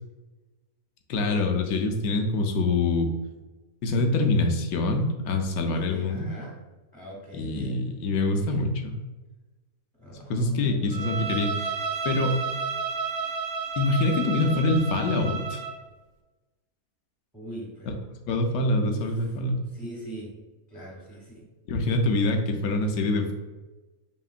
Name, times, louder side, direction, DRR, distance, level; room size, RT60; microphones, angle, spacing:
voice 1, 1.1-3.1 3.8-6.3 7.3-9.0 10.3-11.7 12.0-12.4 13.8-15.6 18.3-19.6 21.7-23.3, left 2 dB, 75° left, 4 dB, 1.1 m, -25 dB
voice 2, 5.8-6.6 6.9-7.8 8.4-8.7 9.9-11.2 14.2-14.7 17.3-18.0 18.8-19.4 19.7-20.4 20.7-21.5, right 1 dB, ahead, -4 dB, 0.4 m, -41 dB
Bowed string instrument, 10.9-15.8, right 5 dB, 70° right, 0.7 m, -31 dB
5.1 x 2.9 x 2.4 m, 1.2 s
omnidirectional pair, 1.6 m